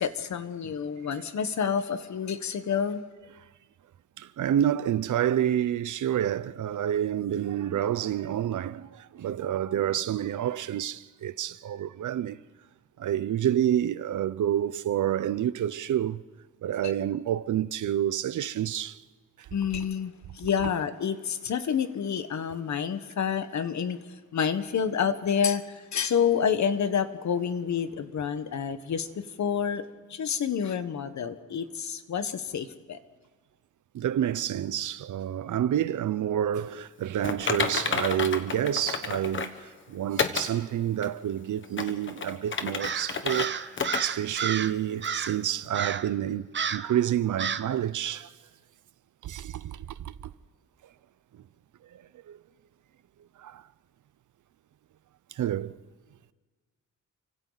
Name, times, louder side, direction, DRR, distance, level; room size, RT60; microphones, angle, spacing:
voice 1, 0.0-3.0 19.5-24.0 24.3-25.6 25.9-29.1 29.4-29.8 30.1-33.0, left 7 dB, 60° left, 1.4 m, -28 dB
voice 2, 4.2-12.4 13.0-16.2 16.6-19.0 33.9-39.5 39.9-48.3 49.2-50.1 52.3-52.4 53.4-53.6 55.4-55.8, right 10 dB, 70° right, 0.7 m, -28 dB
Typing, 37.2-39.6 40.2-40.5 41.0-41.1 41.6-43.5 43.8-44.0 44.4-44.5 45.0-45.1, left 5 dB, 40° left, 1.3 m, -30 dB
Crow, 42.8-44.7 45.0-45.4 45.7-46.1 46.5-46.9 47.4-47.7, right 7 dB, 35° right, 0.7 m, -31 dB
30.0 x 25.0 x 4.1 m
wide cardioid pair, 175°, 32 cm